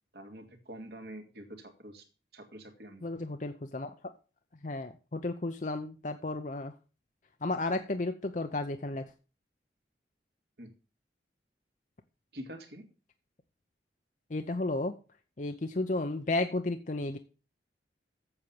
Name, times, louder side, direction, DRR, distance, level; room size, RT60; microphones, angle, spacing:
voice 1, 0.1-2.0 2.3-3.1 10.6-10.7 12.3-12.8, right 1 dB, 65° right, 5 dB, 2.2 m, -46 dB
voice 2, 3.0-3.9 4.6-6.7 7.4-9.1 14.3-14.9 15.4-17.2, left 2 dB, 45° left, 6 dB, 0.7 m, -33 dB
7.9 x 7.3 x 7.0 m, 0.34 s
head